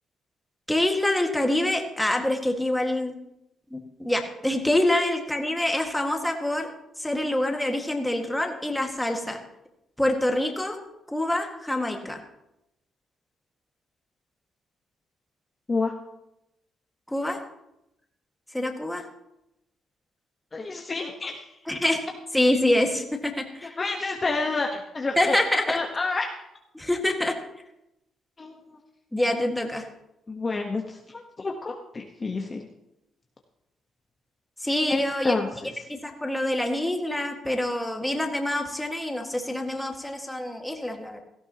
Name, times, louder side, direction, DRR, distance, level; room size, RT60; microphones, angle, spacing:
voice 1, 0.7-3.2 3.7-6.7 7.0-9.4 10.0-10.8 11.1-12.2 17.1-17.4 18.5-19.0 21.7-22.0 22.3-23.8 25.2-25.8 26.7-27.4 29.1-29.9 34.6-35.3 35.9-41.2, left 1 dB, 5° left, 3 dB, 1.8 m, -26 dB
voice 2, 20.5-21.6 23.8-25.4 25.7-26.3 28.4-28.8 30.3-32.7 34.9-35.5, left 3 dB, 30° left, 2 dB, 1.1 m, -29 dB
17.0 x 13.5 x 2.9 m, 0.86 s
cardioid pair, 90°, 0 cm